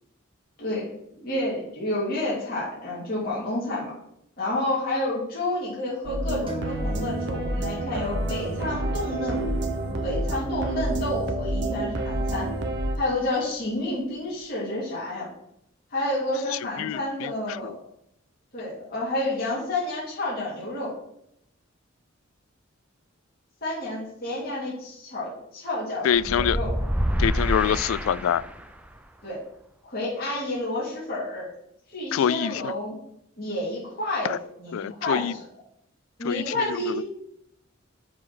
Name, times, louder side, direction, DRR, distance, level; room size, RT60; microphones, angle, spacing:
voice 1, 1.2-3.9 4.4-9.5 10.0-12.5 13.0-15.3 15.9-17.8 18.5-20.9 23.6-26.7 29.2-29.4 29.8-31.5 31.9-33.0 33.4-35.4 36.2-37.0, left 1 dB, 45° left, -7 dB, 3.0 m, -30 dB
sound 1, 6.0-13.0, right 1 dB, 60° right, 0.9 m, -28 dB
sound 2, 6.5-14.0, right 2 dB, 25° right, 1.3 m, -43 dB
voice 2, 16.5-17.3 17.6-17.8 26.0-26.6 27.2-28.4 32.1-32.7 34.2-34.4 34.7-35.3 36.2-37.0, left 9 dB, 80° left, 19 dB, 0.3 m, -25 dB
sound 3, 26.1-28.8, equal, 5° right, 0.4 m, -27 dB
7.5 x 3.9 x 6.1 m, 0.76 s
head